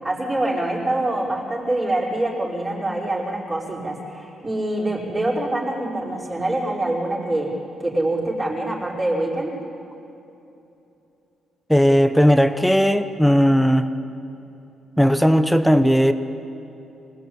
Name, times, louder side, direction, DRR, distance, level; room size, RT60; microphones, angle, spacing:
voice 1, 0.0-7.5 7.8-9.5, right 1 dB, 20° right, -5 dB, 5.1 m, -25 dB
voice 2, 11.7-13.9 15.0-16.1, equal, ahead, 9 dB, 0.9 m, -16 dB
24.5 x 20.0 x 8.7 m, 2.9 s
cardioid pair, 125°, 0 cm